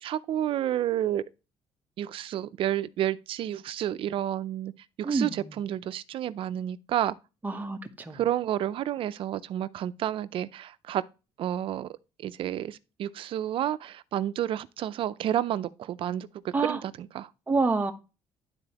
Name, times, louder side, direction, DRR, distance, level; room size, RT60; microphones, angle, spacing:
voice 1, 0.0-1.2 2.0-4.7 5.0-7.1 8.1-11.0 11.4-11.9 12.2-17.3, right 11 dB, 60° right, 0.4 m, -30 dB
voice 2, 7.4-7.8 8.1-8.2 16.5-16.8 17.5-17.9, right 3 dB, 15° right, 0.9 m, -26 dB
11.5 x 4.1 x 2.9 m
cardioid pair, 130°, 10 cm